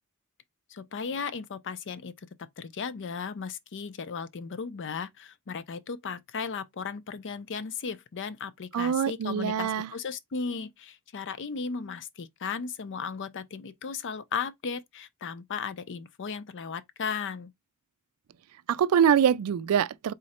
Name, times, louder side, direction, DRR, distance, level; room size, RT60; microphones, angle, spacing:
voice 1, 0.7-2.1 2.6-17.5, left 5 dB, 55° left, 0.5 m, -36 dB
voice 2, 8.7-9.9 18.7-20.1, right 8 dB, 70° right, 0.3 m, -24 dB
3.8 x 3.0 x 4.2 m
head